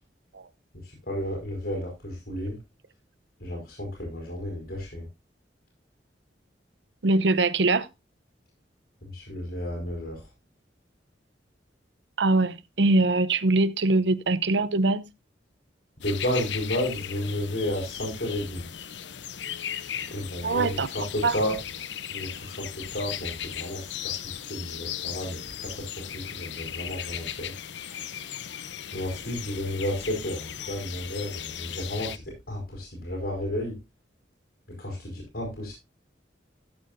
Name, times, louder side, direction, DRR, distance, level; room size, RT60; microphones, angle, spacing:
voice 1, 0.7-2.6 3.4-5.1 9.0-10.2 16.0-18.7 20.1-21.6 22.1-27.5 28.9-33.8 34.7-35.7, left 1 dB, 60° left, 4.6 m, -32 dB
voice 2, 7.0-7.9 12.2-15.1 20.4-20.9 21.2-21.3, right 2 dB, 80° right, 0.7 m, -22 dB
sound 1, 16.0-32.2, left 9 dB, 80° left, 0.7 m, -37 dB
13.5 x 8.5 x 2.6 m
head